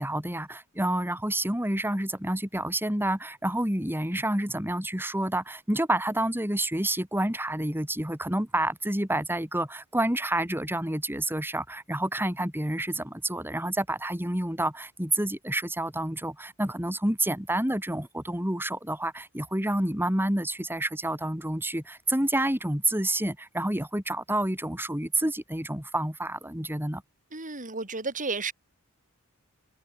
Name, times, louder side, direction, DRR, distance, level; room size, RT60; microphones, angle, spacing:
voice 1, 0.0-27.0, right 1 dB, 10° right, 6.2 m, -29 dB
voice 2, 27.3-28.5, right 4 dB, 35° right, 7.8 m, -32 dB
head